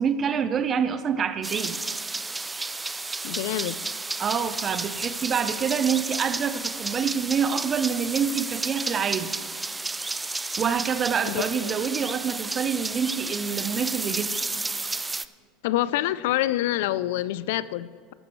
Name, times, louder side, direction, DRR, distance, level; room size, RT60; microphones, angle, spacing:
voice 1, 0.0-1.8 4.2-9.3 10.6-14.3, right 7 dB, 35° right, 12 dB, 0.8 m, -26 dB
sound 1, 1.4-15.3, right 3 dB, 15° right, 0.4 m, -32 dB
voice 2, 3.2-3.8 11.2-11.8 15.6-18.1, left 14 dB, 70° left, 18 dB, 0.3 m, -27 dB
14.0 x 11.5 x 3.1 m, 2.1 s
hypercardioid pair, 85°, 0 cm